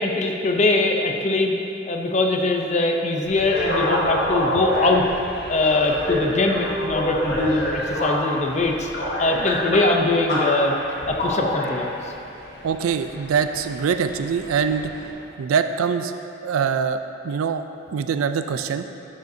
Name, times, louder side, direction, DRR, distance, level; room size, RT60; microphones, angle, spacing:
voice 1, 0.0-1.5 1.9-5.1 5.5-8.9 9.2-10.8 11.1-11.9, left 2 dB, 35° left, 2 dB, 0.6 m, -22 dB
sound 1, 3.2-15.1, left 1 dB, 50° left, 1.3 m, -27 dB
voice 2, 12.6-14.9 15.4-16.1 16.4-17.6 17.9-18.8, right 6 dB, 90° right, 9 dB, 0.4 m, -23 dB
11.5 x 6.6 x 2.7 m, 2.7 s
head